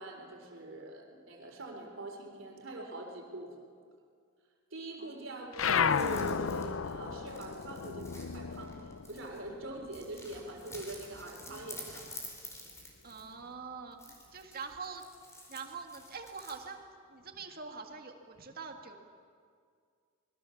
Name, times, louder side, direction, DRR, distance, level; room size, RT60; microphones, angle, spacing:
voice 1, 0.0-3.5 4.7-8.1 8.3-12.1, right 2 dB, 70° right, 2 dB, 4.0 m, -43 dB
voice 2, 5.0-5.5 13.0-15.0 15.5-16.8 17.1-19.0, right 5 dB, 50° right, 4 dB, 2.1 m, -44 dB
sound 1, 5.5-10.4 10.7-12.2, left 6 dB, 80° left, 0.6 m, -34 dB
sound 2, 5.6-9.5 9.9-13.4 13.9-16.6, left 1 dB, 15° left, 4.5 m, -50 dB
25.5 x 21.5 x 7.2 m, 2.1 s
head